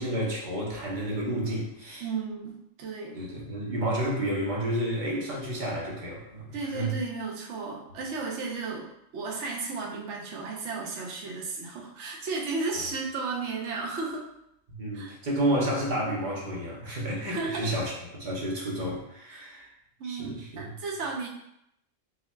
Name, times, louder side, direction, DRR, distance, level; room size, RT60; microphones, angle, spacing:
voice 1, 0.0-2.1 3.1-6.4 6.7-6.9 14.8-19.7 20.0-20.7, right 1 dB, 40° right, -4 dB, 1.0 m, -30 dB
voice 2, 2.0-3.2 6.5-14.3 14.9-15.1 17.3-17.7 19.3-19.5 20.0-21.3, right 4 dB, 65° right, -1 dB, 1.0 m, -34 dB
5.6 x 2.8 x 2.2 m, 0.78 s
omnidirectional pair, 1.4 m